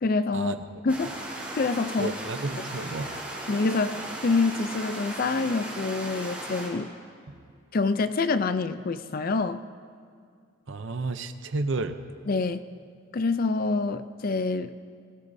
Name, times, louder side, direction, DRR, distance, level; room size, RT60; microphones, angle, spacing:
voice 1, 0.0-0.5 0.8-1.2 1.6-2.1 3.5-6.9 7.7-9.6 12.3-12.6 13.1-14.8, left 3 dB, 45° left, 12 dB, 0.4 m, -26 dB
sound 1, 0.9-6.7, right 1 dB, 10° right, 3.6 m, -37 dB
voice 2, 2.0-3.1 7.3-7.4 10.7-12.0, right 3 dB, 60° right, 10 dB, 0.7 m, -31 dB
21.5 x 16.5 x 2.7 m, 2.3 s
head